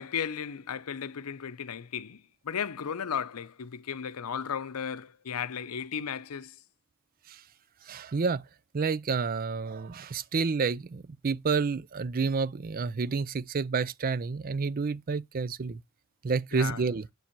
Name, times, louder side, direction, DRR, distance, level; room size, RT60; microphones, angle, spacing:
voice 1, 0.0-6.6 16.5-16.8, left 7 dB, 90° left, 0.6 m, -35 dB
voice 2, 7.9-8.4 8.7-15.8 16.2-17.1, right 5 dB, 40° right, 0.5 m, -29 dB
7.8 x 7.2 x 4.5 m
head